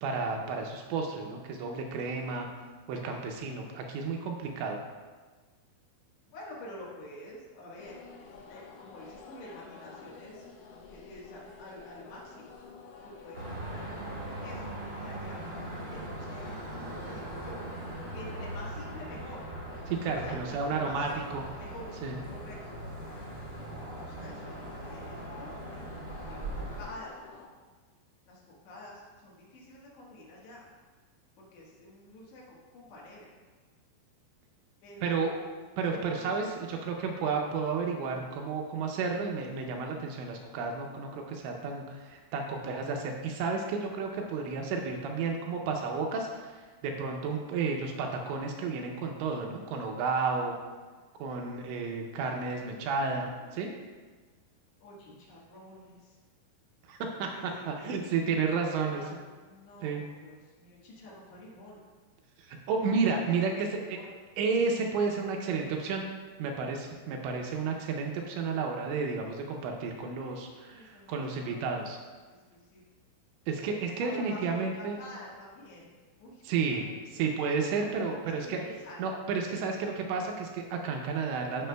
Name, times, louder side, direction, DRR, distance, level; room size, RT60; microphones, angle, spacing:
voice 1, 0.0-2.5 2.9-4.8 19.9-21.4 22.0-22.1 35.0-35.3 35.8-50.5 51.2-53.7 56.8-59.0 59.8-60.0 62.4-64.0 64.4-66.0 66.4-72.0 73.5-75.0 76.4-78.6 79.0-81.7, right 4 dB, 80° right, 1 dB, 2.8 m, -32 dB
voice 2, 6.3-7.9 8.5-10.4 10.9-12.5 13.0-15.4 15.9-17.6 18.1-19.4 20.2-22.0 22.2-22.6 23.5-27.2 28.3-30.7 31.4-33.3 34.8-35.5 35.9-36.9 47.3-47.6 52.6-53.6 54.8-56.2 57.3-58.2 58.6-61.8 63.3-64.1 70.7-71.8 72.3-72.8 73.6-73.7 74.0-76.4 76.7-77.2 77.9-79.1, left 1 dB, 70° left, -4 dB, 3.4 m, -48 dB
sound 1, 7.8-27.5, left 5 dB, 90° left, 3.2 m, -50 dB
sound 2, 13.3-26.9, right 1 dB, 45° right, 1.1 m, -40 dB
14.5 x 5.8 x 2.2 m, 1.4 s
omnidirectional pair, 5.5 m